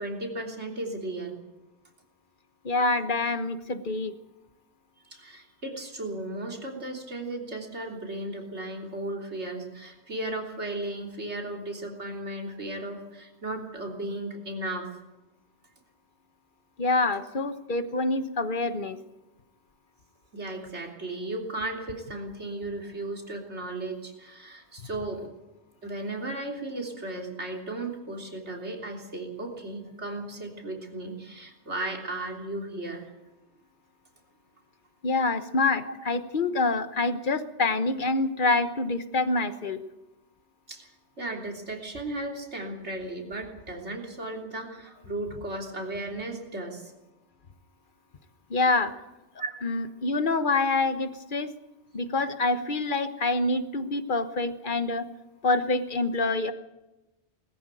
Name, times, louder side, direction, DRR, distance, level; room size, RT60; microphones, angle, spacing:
voice 1, 0.0-1.4 5.1-15.0 20.3-25.3 25.8-33.1 40.7-40.9 41.2-46.9 49.4-49.5, right 2 dB, 75° right, 1 dB, 3.6 m, -35 dB
voice 2, 2.6-4.1 16.8-19.0 35.0-39.8 48.5-48.9 49.6-51.5 51.9-55.1 55.4-56.5, left 3 dB, 50° left, 10 dB, 1.3 m, -26 dB
20.5 x 14.0 x 9.2 m, 1.0 s
omnidirectional pair, 1.2 m